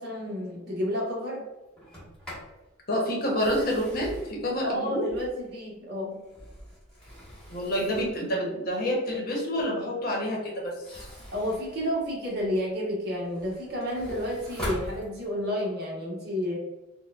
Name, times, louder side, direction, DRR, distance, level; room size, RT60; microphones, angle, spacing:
voice 1, 0.0-1.4 4.6-6.2 11.3-16.6, equal, 50° right, -3 dB, 1.0 m, -31 dB
Sliding door, 1.8-2.6 3.2-5.6 6.1-8.3 10.7-12.6 13.1-15.6, equal, 5° left, 1.1 m, -42 dB
voice 2, 2.9-5.1 7.5-11.1, equal, 45° left, -2 dB, 0.8 m, -28 dB
4.6 x 2.1 x 2.3 m, 1.1 s
head